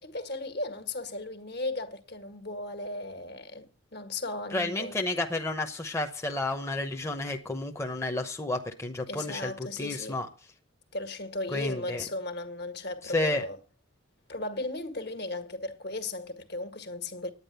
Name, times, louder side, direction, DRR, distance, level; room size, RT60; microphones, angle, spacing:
voice 1, 0.0-5.0 9.1-10.2 10.9-13.6 14.3-17.3, left 2 dB, 55° left, 1.8 m, -36 dB
voice 2, 4.5-9.5 9.8-10.3 11.5-12.0 13.1-13.4, left 2 dB, 15° left, 0.9 m, -31 dB
9.8 x 9.8 x 6.9 m
head